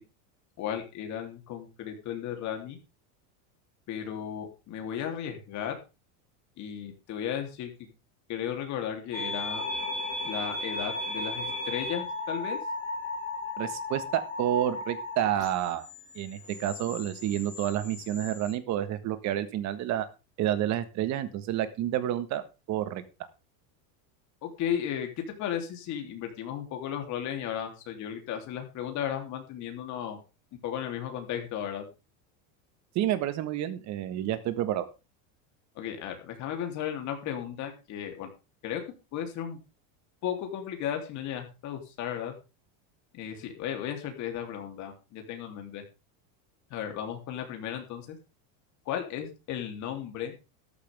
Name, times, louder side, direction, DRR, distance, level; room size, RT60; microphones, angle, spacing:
voice 1, 0.6-2.8 3.9-5.7 6.6-7.7 8.3-9.7 10.2-12.6 24.4-30.2 30.6-31.9 35.8-38.3 38.6-38.8 39.1-39.6 40.2-42.3 43.1-45.8 46.7-48.2 48.9-50.3, left 9 dB, 40° left, 4 dB, 3.4 m, -35 dB
sound 1, 9.1-18.5, left 2 dB, 15° left, 6.5 m, -36 dB
voice 2, 13.6-15.9 16.2-20.1 20.4-23.0 33.0-34.9, right 12 dB, 40° right, 12 dB, 1.6 m, -29 dB
14.0 x 11.5 x 3.6 m, 0.29 s
supercardioid pair, 160°, 44 cm